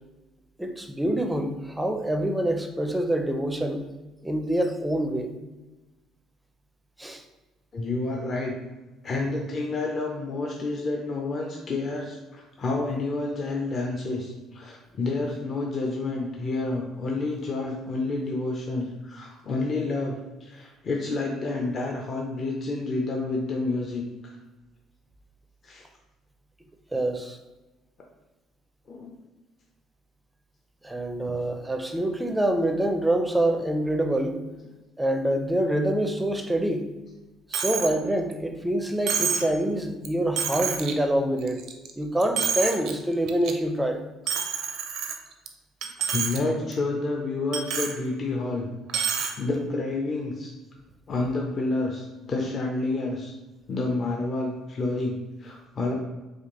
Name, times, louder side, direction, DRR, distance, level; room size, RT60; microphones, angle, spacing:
voice 1, 0.6-3.8 4.2-5.3 7.0-7.2 26.9-27.4 30.8-34.4 35.0-36.9 37.5-41.6 42.0-44.0, right 1 dB, 10° right, 5 dB, 0.4 m, -26 dB
voice 2, 7.7-8.6 9.0-24.3 25.6-25.9 28.9-29.1 46.1-48.7 49.0-50.5 51.1-53.4 53.7-55.9, left 2 dB, 40° left, 0 dB, 0.5 m, -29 dB
Coin (dropping), 37.5-37.9 38.3-38.4 39.1-39.5 40.0-40.1 40.4-40.9 41.4-41.9 42.2-42.9 43.3-43.5 44.3-45.5 45.8-46.4 46.7-46.8 47.5-48.0 48.9-49.3, right 7 dB, 65° right, 0.5 m, -28 dB
4.2 x 2.6 x 3.0 m, 1.1 s
cardioid pair, 110°, 0 cm